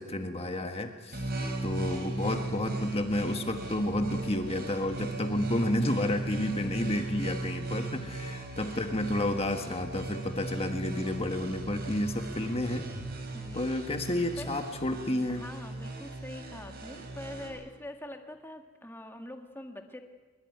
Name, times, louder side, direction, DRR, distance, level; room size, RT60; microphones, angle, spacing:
voice 1, 0.0-1.3 1.6-12.9 13.5-15.5, left 1 dB, 25° left, 6 dB, 1.4 m, -31 dB
sound 1, 1.1-17.5, right 2 dB, 45° right, 5.1 m, -37 dB
voice 2, 1.2-1.6 6.6-6.9 8.5-8.6 13.3-13.7 14.4-14.8 15.3-20.0, left 1 dB, 10° left, 4 dB, 1.5 m, -44 dB
23.0 x 22.5 x 9.4 m, 1.4 s
head